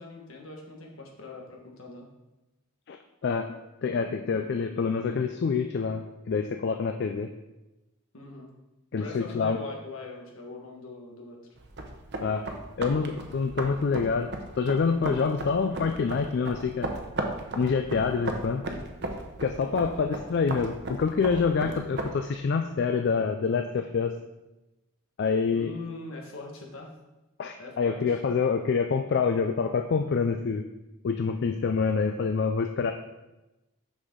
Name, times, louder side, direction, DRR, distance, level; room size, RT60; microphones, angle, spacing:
voice 1, 0.0-2.1 8.1-8.5 8.9-11.4 25.5-26.9 27.6-28.2, left 2 dB, 70° left, 0 dB, 1.4 m, -41 dB
voice 2, 3.2-3.5 3.8-7.3 8.9-9.6 12.2-12.5 12.8-16.9 17.6-18.6 19.4-24.1 25.2-25.7 27.4-30.6 31.0-32.9, left 5 dB, 50° left, 6 dB, 0.3 m, -26 dB
sound 1, 11.6-22.1, right 2 dB, 50° right, 0.8 m, -36 dB
6.3 x 6.1 x 3.8 m, 1.0 s
head